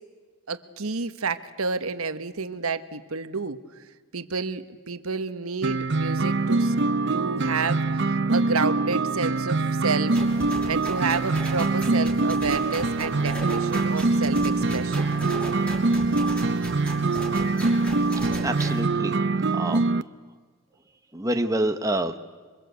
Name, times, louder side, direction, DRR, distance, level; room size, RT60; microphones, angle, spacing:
voice 1, 0.5-3.6 4.1-6.7 7.1-10.2 10.7-15.1, right 4 dB, 80° right, 10 dB, 1.2 m, -30 dB
sound 1, 5.6-20.0, right 3 dB, 55° right, 0.7 m, -24 dB
sound 2, 10.1-18.8, equal, 5° left, 5.6 m, -37 dB
voice 2, 18.4-19.1 19.5-19.8 21.1-22.2, right 1 dB, 15° right, 6 dB, 1.1 m, -26 dB
27.0 x 24.0 x 8.1 m, 1.4 s
head